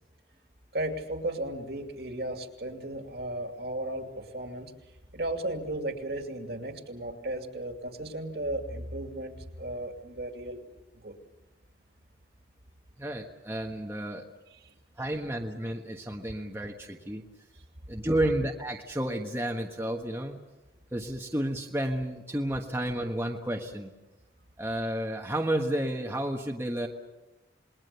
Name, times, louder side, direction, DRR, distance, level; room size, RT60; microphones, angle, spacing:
voice 1, 0.7-4.7 5.1-10.6 10.9-11.2 14.6-14.7, right 1 dB, 60° right, 5 dB, 2.6 m, -35 dB
voice 2, 13.0-14.2 15.0-17.2 17.9-20.4 20.9-23.9 24.6-26.9, right 1 dB, 15° right, 1 dB, 1.4 m, -31 dB
28.5 x 21.0 x 6.9 m, 1.0 s
head